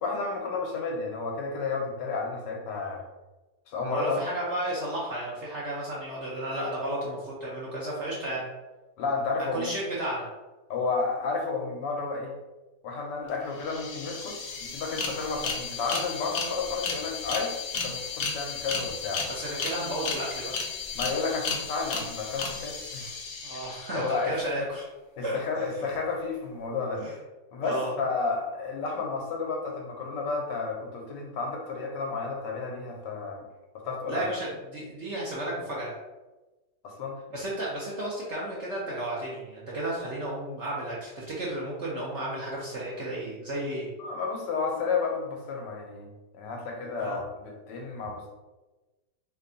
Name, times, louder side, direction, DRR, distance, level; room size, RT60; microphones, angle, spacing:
voice 1, 0.0-3.0 3.7-4.2 9.0-9.7 10.7-12.3 12.8-19.3 20.9-23.1 23.9-24.4 25.2-27.1 27.5-33.4 33.8-34.3 36.8-37.2 44.0-48.3, left 4 dB, 80° left, 1 dB, 1.4 m, -32 dB
voice 2, 3.9-8.5 9.4-10.3 19.3-20.5 23.4-24.9 25.2-25.9 27.0-27.1 27.6-28.0 34.1-35.9 37.3-43.9 47.0-47.2, right 1 dB, 55° right, -5 dB, 0.8 m, -33 dB
sound 1, 13.3-13.4 13.6-24.4, left 5 dB, 65° left, 1.0 m, -34 dB
3.3 x 2.3 x 3.8 m, 1.1 s
omnidirectional pair, 1.9 m